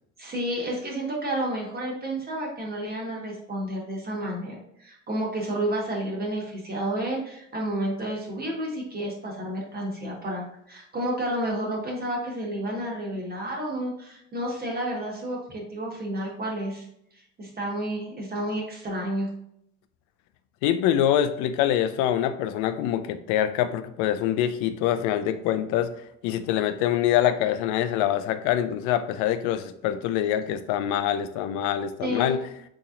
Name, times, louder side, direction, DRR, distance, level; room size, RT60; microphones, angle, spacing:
voice 1, 0.2-16.9 17.4-19.3 32.0-32.4, right 1 dB, 30° right, -2 dB, 1.3 m, -31 dB
voice 2, 20.6-25.9 26.2-32.4, left 11 dB, 65° left, 10 dB, 0.5 m, -25 dB
3.9 x 2.9 x 2.4 m, 0.74 s
hypercardioid pair, 70°, 32 cm